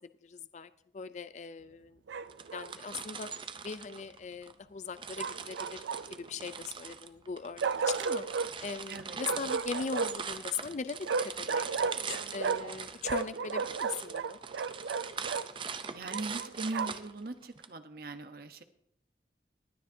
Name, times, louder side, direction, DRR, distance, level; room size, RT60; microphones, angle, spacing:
voice 1, 0.2-2.0 2.5-3.3 3.6-5.8 6.1-8.2 8.6-11.0 11.4-14.4, left 5 dB, 40° left, 12 dB, 0.4 m, -40 dB
Bark, 2.1-2.7 5.2-6.3 7.6-8.5 9.2-10.3 11.0-12.8 13.0-15.5 16.1-17.1, right 5 dB, 80° right, 0.4 m, -34 dB
sound 1, 2.3-4.5 5.0-17.7, right 6 dB, 30° right, 0.5 m, -42 dB
voice 2, 15.9-18.6, right 2 dB, 55° right, 9 dB, 0.9 m, -40 dB
20.0 x 9.4 x 2.7 m, 0.76 s
head